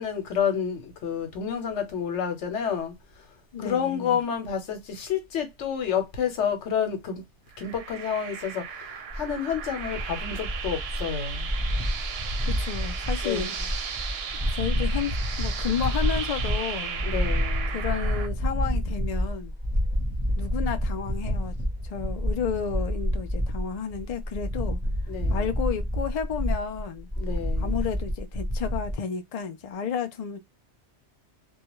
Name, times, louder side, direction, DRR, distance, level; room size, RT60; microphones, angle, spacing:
voice 1, 0.0-2.9 3.6-7.2 7.6-11.5 13.2-13.4 17.0-17.8 25.1-25.5 27.2-27.8, left 7 dB, 85° left, 1.1 m, -29 dB
voice 2, 3.5-4.2 12.5-13.6 14.5-17.0 17.7-19.5 20.4-21.6 21.8-24.8 25.3-27.1 27.6-30.4, left 7 dB, 60° left, 0.4 m, -32 dB
sound 1, 7.5-18.3, right 7 dB, 70° right, 0.8 m, -36 dB
sound 2, 9.1-28.9, equal, 10° right, 0.6 m, -29 dB
2.3 x 2.1 x 2.9 m
omnidirectional pair, 1.2 m